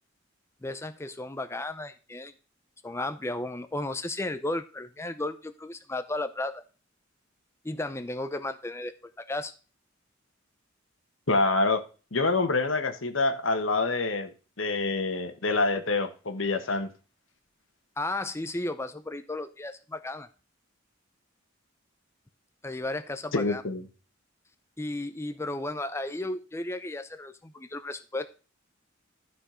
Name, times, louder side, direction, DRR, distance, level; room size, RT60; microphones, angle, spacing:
voice 1, 0.6-2.3 2.8-6.6 7.6-9.5 18.0-20.3 22.6-23.6 24.8-28.3, left 2 dB, 15° left, 10 dB, 0.5 m, -34 dB
voice 2, 11.3-11.8 12.1-14.3 14.6-16.9 23.3-23.8, left 3 dB, 75° left, 8 dB, 1.4 m, -26 dB
12.0 x 5.1 x 5.0 m, 0.35 s
head